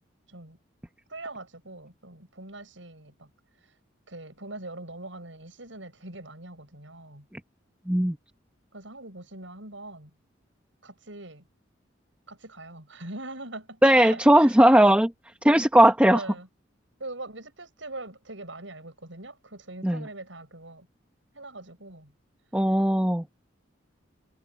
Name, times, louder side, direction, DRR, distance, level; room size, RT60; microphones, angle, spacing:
voice 1, 1.1-3.3 4.1-7.2 8.7-10.1 10.8-11.4 12.3-14.5 16.1-16.5 17.0-20.9 21.3-22.1, right 2 dB, 75° right, 7.9 m, -42 dB
voice 2, 13.8-15.1 15.4-16.2 19.8-20.1 22.5-23.2, right 1 dB, 5° right, 1.2 m, -18 dB
head